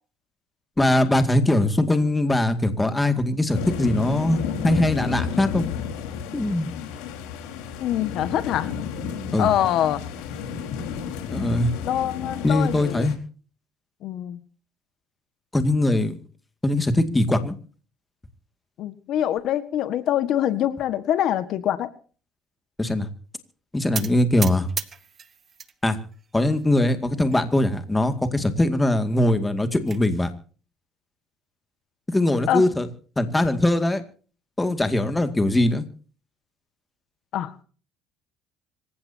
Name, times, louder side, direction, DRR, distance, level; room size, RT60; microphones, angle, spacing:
voice 1, 0.8-5.6 6.3-6.7 9.3-9.5 11.3-11.7 12.4-13.2 15.5-16.1 16.6-17.5 22.8-23.1 23.7-24.7 25.8-26.0 26.3-30.3 32.1-32.9 33.2-34.0 34.6-35.8, left 1 dB, 10° left, 8 dB, 2.2 m, -21 dB
sound 1, 3.5-13.1, left 7 dB, 85° left, 4.4 m, -32 dB
voice 2, 7.8-8.7 9.4-10.0 11.8-13.1 14.0-14.4 18.8-21.9 32.5-32.6 37.3-37.6, left 11 dB, 60° left, 12 dB, 1.6 m, -24 dB
sound 2, 23.9-25.7 26.1-26.7 27.3-27.4 27.7-27.8 28.2-28.3 29.4-30.0, right 7 dB, 35° right, 1.3 m, -34 dB
26.0 x 16.0 x 2.8 m, 0.41 s
cardioid pair, 125°, 0 cm